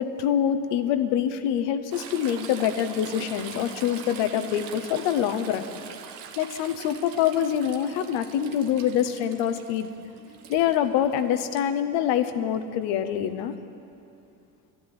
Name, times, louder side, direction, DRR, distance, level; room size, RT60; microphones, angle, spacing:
voice 1, 0.0-5.7 6.4-9.9 10.5-13.5, left 9 dB, 75° left, 10 dB, 0.9 m, -25 dB
Toilet flush / Trickle dribble, 1.9-11.6 13.4-13.5, right 7 dB, 75° right, 1.1 m, -42 dB
12.0 x 8.9 x 9.8 m, 2.7 s
hypercardioid pair, 60°, 42 cm